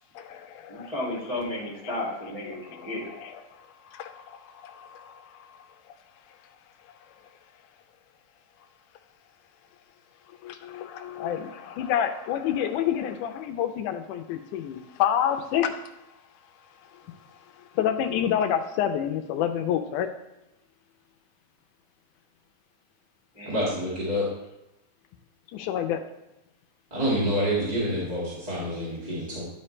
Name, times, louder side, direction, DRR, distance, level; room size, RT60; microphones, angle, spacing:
voice 1, 0.2-0.9 1.8-1.9 2.5-5.6 10.4-15.8 17.1-17.2 17.7-20.1 25.5-26.0, left 9 dB, 80° left, 7 dB, 1.9 m, -29 dB
voice 2, 0.7-3.0 23.3-23.6, left 1 dB, 15° left, -5 dB, 1.7 m, -33 dB
voice 3, 23.4-24.3 26.9-29.4, equal, 20° right, -8 dB, 1.1 m, -27 dB
10.0 x 5.0 x 3.2 m, 0.92 s
omnidirectional pair, 3.9 m